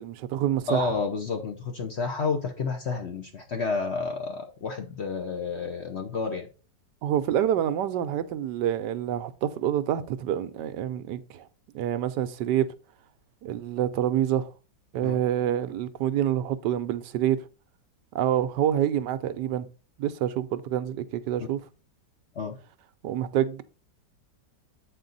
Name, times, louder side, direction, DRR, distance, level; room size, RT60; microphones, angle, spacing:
voice 1, 0.0-1.0 7.0-11.5 11.7-12.7 13.4-14.5 14.9-17.4 18.1-19.7 20.0-21.6 23.0-23.6, right 10 dB, 75° right, 1.2 m, -27 dB
voice 2, 0.7-6.5 15.0-15.2 22.3-22.5, left 4 dB, 50° left, 0.8 m, -30 dB
8.1 x 4.4 x 3.9 m
omnidirectional pair, 1.9 m